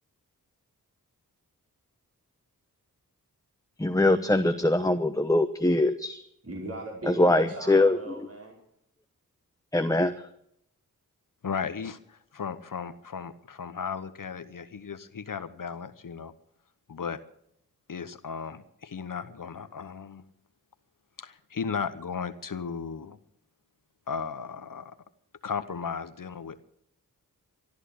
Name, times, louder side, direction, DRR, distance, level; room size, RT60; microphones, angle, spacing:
voice 1, 3.8-6.2 7.0-8.0 9.7-10.3, left 2 dB, 10° left, 8 dB, 1.0 m, -23 dB
voice 2, 6.4-8.5, right 1 dB, 45° right, -2 dB, 5.0 m, -38 dB
voice 3, 11.4-16.3 16.9-17.2 17.9-20.2 21.2-23.2 24.1-24.9 25.4-26.6, left 6 dB, 60° left, 12 dB, 1.1 m, -35 dB
13.0 x 12.5 x 8.5 m, 0.72 s
cardioid pair, 40°, 36 cm